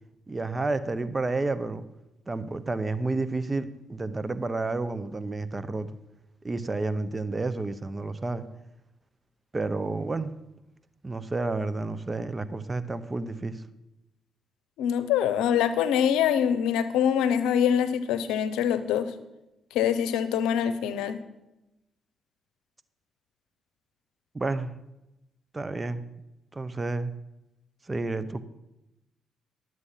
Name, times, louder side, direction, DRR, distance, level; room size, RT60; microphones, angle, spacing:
voice 1, 0.3-1.8 2.3-5.9 6.4-8.4 9.5-10.3 11.0-13.6 24.3-24.7 25.5-26.0 26.5-27.1 27.9-28.4, right 3 dB, 30° right, 14 dB, 0.9 m, -30 dB
voice 2, 14.8-19.1 19.7-21.2, left 9 dB, 85° left, 12 dB, 0.7 m, -24 dB
11.5 x 7.9 x 5.6 m, 0.94 s
supercardioid pair, 55°, 0 cm